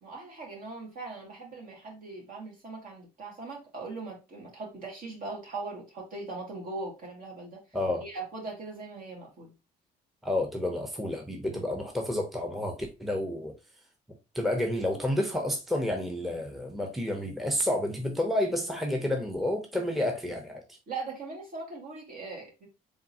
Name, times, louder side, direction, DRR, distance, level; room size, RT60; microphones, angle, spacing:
voice 1, 0.0-7.6 8.0-9.5 11.5-11.6 20.9-22.7, right 3 dB, 55° right, 2.1 m, -40 dB
voice 2, 7.7-8.0 10.2-13.5 14.3-20.6, left 1 dB, ahead, 0.7 m, -30 dB
4.0 x 3.6 x 2.8 m
cardioid pair, 110°, 17 cm